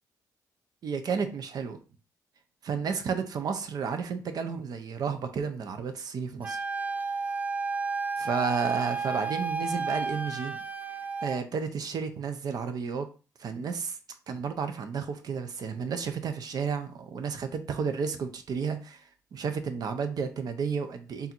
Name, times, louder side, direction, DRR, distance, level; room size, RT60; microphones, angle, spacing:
voice 1, 0.8-1.8 2.6-6.6 8.2-10.6 11.2-13.1 13.4-14.0 14.3-19.0 19.3-21.3, right 6 dB, 65° right, 8 dB, 0.7 m, -32 dB
Wind instrument woodwind instrument, 6.4-11.4, right 4 dB, 20° right, 0.4 m, -32 dB
3.5 x 2.7 x 4.4 m, 0.35 s
cardioid pair, 95°, 7 cm